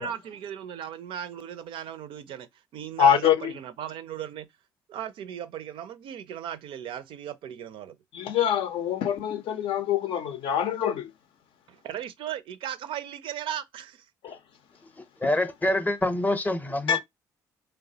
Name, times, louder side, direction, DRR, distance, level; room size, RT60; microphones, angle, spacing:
voice 1, 0.0-4.5 4.9-8.0 11.7-14.1, right 10 dB, 65° right, 0.4 m, -37 dB
voice 2, 3.0-3.5 8.1-11.1 14.2-14.4 15.2-15.3 16.9-17.0, left 9 dB, 65° left, 0.5 m, -24 dB
voice 3, 15.2-17.0, left 1 dB, 15° left, 0.6 m, -26 dB
3.2 x 2.0 x 2.6 m
hypercardioid pair, 55°, 10 cm